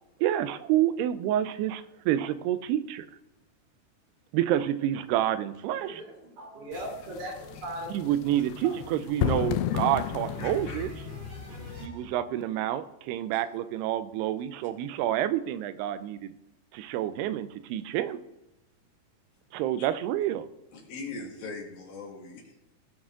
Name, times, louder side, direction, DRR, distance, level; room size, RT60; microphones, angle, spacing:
voice 1, 0.2-3.1 4.3-6.0 7.9-10.9 11.8-16.3 16.7-18.2 19.5-20.5, right 12 dB, 90° right, 13 dB, 2.7 m, -28 dB
voice 2, 5.8-7.9 8.6-8.7 10.3-10.4 10.7-10.8 11.1-12.1, right 1 dB, 70° right, -2 dB, 4.7 m, -40 dB
sound 1, 6.7-11.9, left 12 dB, 80° left, 2.3 m, -33 dB
voice 3, 10.4-10.9 19.8-19.9 20.7-22.7, left 3 dB, 65° left, 0 dB, 3.6 m, -41 dB
18.5 x 6.3 x 3.7 m, 0.92 s
omnidirectional pair, 4.6 m